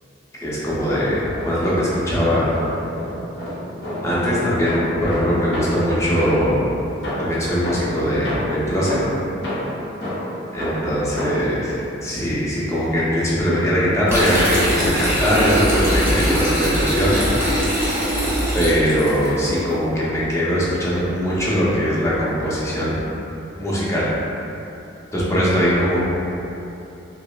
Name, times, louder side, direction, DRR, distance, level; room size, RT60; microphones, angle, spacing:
voice 1, 0.4-2.6 4.0-6.6 7.2-9.0 10.5-17.3 17.8-17.9 18.5-23.0 23.6-24.1 25.1-26.0, equal, 15° left, -8 dB, 0.6 m, -21 dB
sound 1, 0.9-1.8 2.1-6.6 7.0-11.6, equal, 80° left, 1.0 m, -29 dB
sound 2, 14.1-19.3, equal, 15° right, 0.8 m, -21 dB
5.0 x 2.1 x 2.3 m, 2.9 s
head